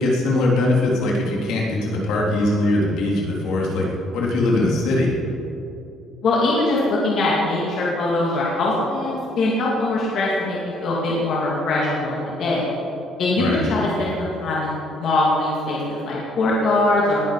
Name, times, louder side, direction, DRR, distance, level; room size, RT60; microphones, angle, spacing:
voice 1, 0.0-3.9 4.1-5.1 13.4-13.6, left 2 dB, 65° left, -3 dB, 3.3 m, -21 dB
voice 2, 6.2-12.7 13.2-17.2, left 2 dB, 45° left, -5 dB, 2.6 m, -22 dB
19.5 x 11.5 x 5.0 m, 2.8 s
cardioid pair, 175°, 0 cm